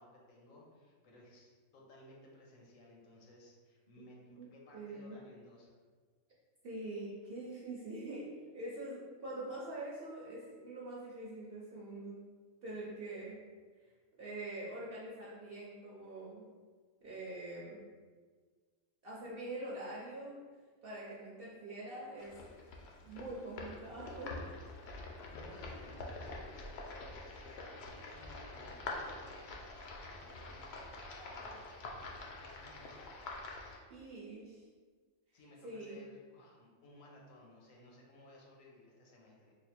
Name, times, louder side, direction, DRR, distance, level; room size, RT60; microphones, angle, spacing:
voice 1, 0.0-5.8 25.3-31.6 32.4-33.3 35.3-39.5, left 1 dB, 80° left, -2 dB, 1.2 m, -58 dB
voice 2, 4.7-5.2 6.6-8.3 8.5-12.2 12.6-13.4 13.8-16.5 17.0-17.8 19.0-20.4 20.8-22.4 23.0-24.3 33.9-34.7 35.3-36.1, right 2 dB, 55° right, -7 dB, 0.8 m, -44 dB
sound 1, 22.2-33.8, left 2 dB, 65° left, 0.7 m, -46 dB
3.2 x 2.1 x 4.2 m, 1.5 s
omnidirectional pair, 1.4 m